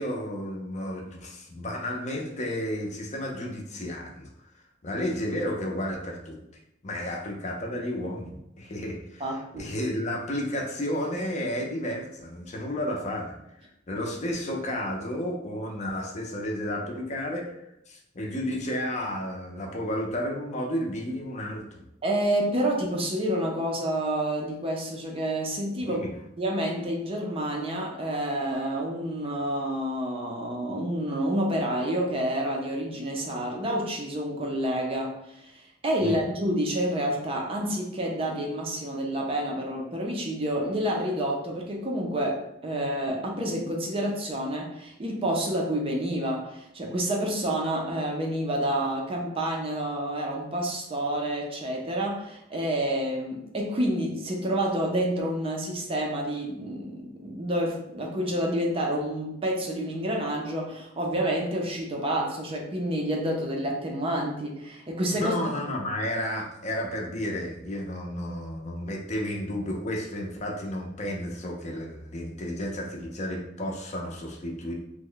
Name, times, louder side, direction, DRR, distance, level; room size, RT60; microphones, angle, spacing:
voice 1, 0.0-4.3 4.8-6.4 6.8-13.3 13.9-21.6 25.8-26.1 36.0-36.2 65.2-74.7, left 1 dB, 35° left, 0 dB, 0.5 m, -32 dB
voice 2, 9.2-9.7 22.0-26.0 26.4-35.4 35.8-65.3, right 1 dB, 30° right, 0 dB, 0.5 m, -29 dB
3.0 x 2.1 x 3.8 m, 0.81 s
head